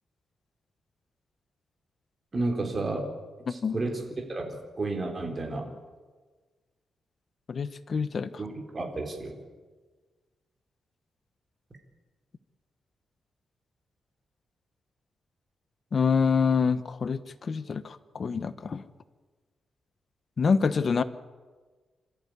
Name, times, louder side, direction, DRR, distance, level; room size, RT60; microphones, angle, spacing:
voice 1, 2.3-3.1 3.5-5.8 8.4-9.4, right 2 dB, 30° right, 3 dB, 4.0 m, -32 dB
voice 2, 3.5-3.8 7.5-8.3 15.9-18.8 20.4-21.0, left 5 dB, 40° left, 13 dB, 1.0 m, -26 dB
27.0 x 14.0 x 9.5 m, 1.4 s
wide cardioid pair, 140°, 0 cm